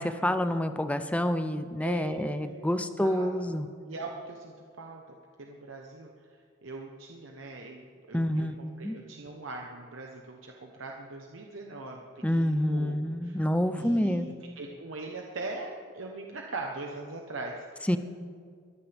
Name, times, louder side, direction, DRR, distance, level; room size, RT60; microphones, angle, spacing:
voice 1, 0.0-3.7 8.1-8.6 8.8-9.0 12.2-14.3 17.9-18.0, equal, 5° left, 10 dB, 0.6 m, -28 dB
voice 2, 1.8-3.6 3.9-6.1 6.6-12.9 13.2-13.4 13.8-17.9, right 2 dB, 70° right, 1 dB, 1.1 m, -41 dB
23.5 x 14.0 x 3.5 m, 2.1 s
head